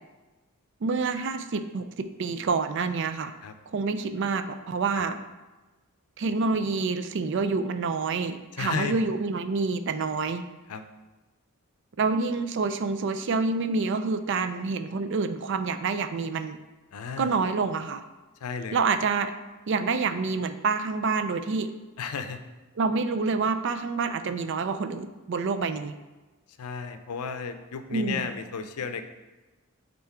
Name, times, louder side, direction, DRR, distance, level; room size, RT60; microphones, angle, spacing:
voice 1, 0.8-3.3 3.7-5.2 6.2-10.4 12.0-16.6 17.2-18.0 18.7-19.3 19.7-21.7 22.8-25.9 27.9-28.2, right 4 dB, 55° right, 10 dB, 0.4 m, -27 dB
voice 2, 8.5-9.0 10.7-10.8 16.9-17.3 18.4-18.8 22.0-22.4 26.6-29.0, left 5 dB, 90° left, 8 dB, 0.5 m, -33 dB
5.8 x 3.8 x 4.4 m, 1.2 s
head